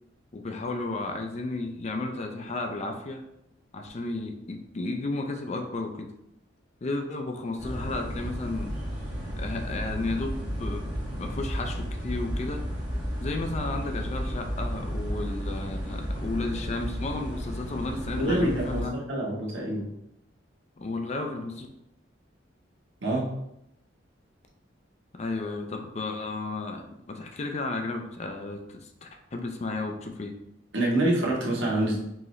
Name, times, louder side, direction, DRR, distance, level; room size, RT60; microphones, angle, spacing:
voice 1, 0.3-3.2 3.7-6.1 6.8-8.7 9.4-10.9 11.1-12.7 13.2-19.0 20.8-21.7 25.1-30.4, left 2 dB, 35° left, 4 dB, 0.5 m, -33 dB
sound 1, 7.6-18.8, equal, 25° right, 1.5 m, -33 dB
voice 2, 18.2-19.9 23.0-23.3 30.7-32.0, right 1 dB, 85° right, -3 dB, 1.2 m, -26 dB
4.6 x 2.9 x 3.1 m, 0.81 s
head